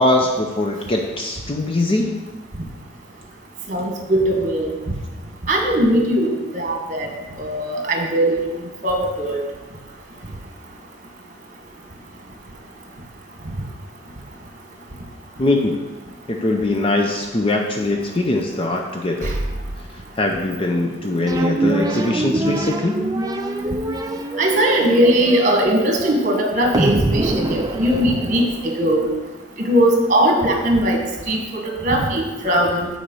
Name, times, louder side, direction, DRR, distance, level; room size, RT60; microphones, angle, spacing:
voice 1, 0.0-2.2 15.4-15.8 16.3-19.3 20.2-23.0, left 2 dB, 30° left, 2 dB, 0.5 m, -21 dB
voice 2, 3.7-4.7 5.5-7.1 7.4-8.4 8.8-9.4 19.2-19.4 24.4-29.1 29.6-32.9, right 1 dB, 40° right, 1 dB, 1.5 m, -19 dB
sound 1, 21.3-28.8, right 2 dB, 20° right, 0.5 m, -24 dB
8.6 x 4.3 x 5.4 m, 1.2 s
head